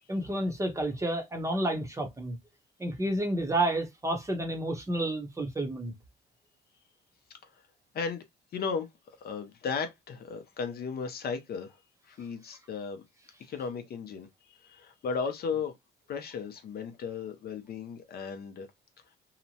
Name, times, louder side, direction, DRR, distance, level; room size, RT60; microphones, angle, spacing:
voice 1, 0.1-2.4 2.8-5.9, right 1 dB, 15° right, 0.7 m, -30 dB
voice 2, 8.5-8.9 9.2-11.8 12.1-13.0 13.4-15.7 16.1-18.7, left 5 dB, 50° left, 0.6 m, -35 dB
2.8 x 2.1 x 2.7 m
cardioid pair, 110°, 21 cm